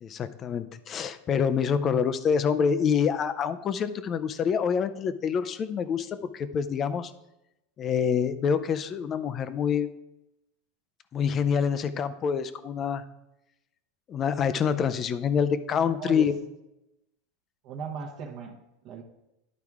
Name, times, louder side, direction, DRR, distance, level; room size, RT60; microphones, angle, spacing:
voice 1, 0.0-7.1 7.8-9.9 11.1-13.0 14.1-16.3, left 7 dB, 25° left, 13 dB, 0.4 m, -26 dB
voice 2, 16.0-16.4 17.6-19.0, right 6 dB, 45° right, 3 dB, 0.9 m, -38 dB
11.0 x 4.7 x 3.6 m, 0.90 s
supercardioid pair, 150°, 0 cm